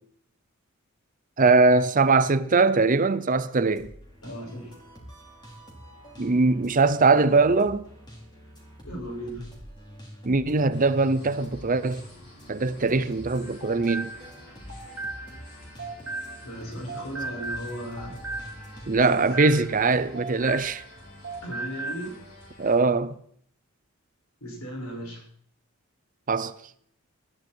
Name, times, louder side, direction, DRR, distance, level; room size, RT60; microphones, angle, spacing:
voice 1, 1.4-3.9 6.2-7.8 10.2-12.0 12.5-14.1 18.9-20.8 22.6-23.2 26.3-26.5, right 3 dB, 40° right, 0.7 m, -21 dB
sound 1, 3.8-19.1, equal, 20° left, 3.8 m, -47 dB
voice 2, 4.2-4.8 8.8-9.5 16.4-18.2 19.2-19.6 21.4-22.1 24.4-25.2, equal, 80° left, 6.2 m, -36 dB
sound 2, 10.7-22.8, left 1 dB, 50° left, 7.2 m, -49 dB
sound 3, 13.3-16.6 16.9-21.0 21.2-22.1, right 3 dB, 70° right, 2.4 m, -37 dB
19.5 x 12.0 x 4.5 m
head